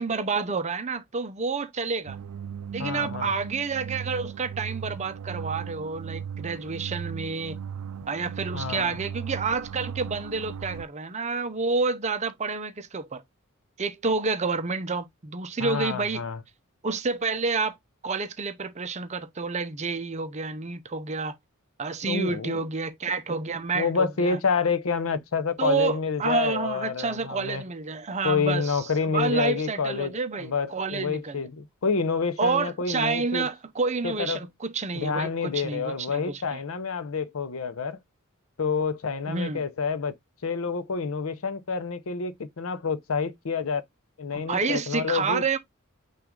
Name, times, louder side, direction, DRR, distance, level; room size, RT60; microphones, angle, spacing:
voice 1, 0.0-2.2 2.7-7.6 8.1-13.2 13.8-16.2 16.8-17.8 18.0-21.4 21.8-24.4 25.6-31.4 32.4-36.6 39.3-39.6 44.3-45.6, right 4 dB, 30° right, 0.6 m, -29 dB
sound 1, 2.1-10.9, right 7 dB, 90° right, 0.4 m, -37 dB
voice 2, 2.8-3.3 8.5-9.0 15.6-16.4 22.1-22.6 23.7-27.6 28.2-30.1 30.4-33.5 34.0-34.4 34.9-38.0 38.6-40.2 40.4-43.8 44.2-45.4, left 5 dB, 70° left, 0.6 m, -28 dB
5.9 x 2.4 x 3.7 m
head